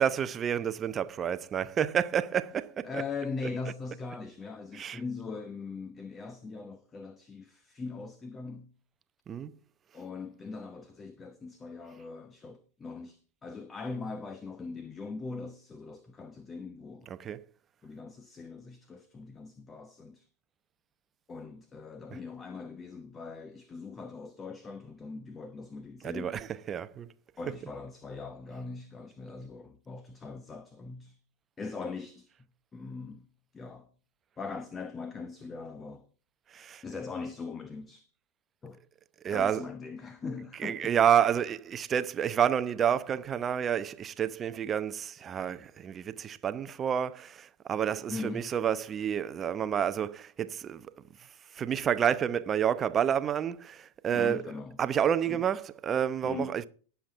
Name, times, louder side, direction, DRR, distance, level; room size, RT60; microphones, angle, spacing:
voice 1, 0.0-2.9 4.7-5.0 9.3-9.5 17.2-17.4 26.0-27.1 36.5-36.8 39.2-39.6 40.6-50.8 51.6-54.4 54.8-56.7, right 8 dB, 25° right, 0.8 m, -29 dB
voice 2, 2.8-8.7 9.9-17.1 17.8-20.3 21.3-26.4 27.4-31.2 31.6-32.3 32.7-33.3 33.5-33.9 34.4-36.1 36.8-38.1 38.6-38.8 39.3-41.0 48.1-48.5 54.1-54.8 55.3-55.5 56.2-56.6, left 4 dB, 20° left, 1.0 m, -41 dB
19.0 x 7.3 x 3.7 m
figure-of-eight pair, 90°, 0 cm